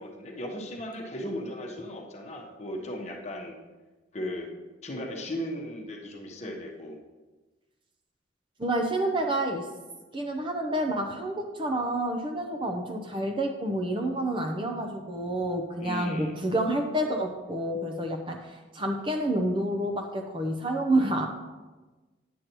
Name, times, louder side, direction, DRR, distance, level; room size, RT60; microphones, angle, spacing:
voice 1, 0.0-3.6 4.1-4.5 4.8-7.0 15.8-16.3, equal, 35° left, 1 dB, 1.1 m, -36 dB
voice 2, 8.6-9.7 10.1-21.3, right 1 dB, 25° right, 3 dB, 0.7 m, -29 dB
10.0 x 8.3 x 3.0 m, 1.2 s
head